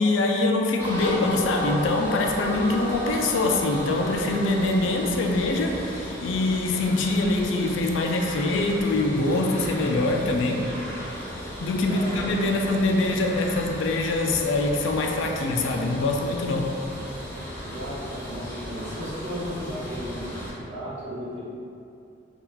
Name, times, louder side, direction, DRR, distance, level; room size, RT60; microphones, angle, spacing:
voice 1, 0.0-10.7 11.4-16.7, left 2 dB, 80° left, 2 dB, 0.4 m, -24 dB
sound 1, 0.8-20.5, equal, 10° left, 0.5 m, -35 dB
voice 2, 11.9-12.7 17.6-21.4, equal, 65° right, -9 dB, 1.0 m, -35 dB
2.8 x 2.3 x 3.7 m, 2.5 s
head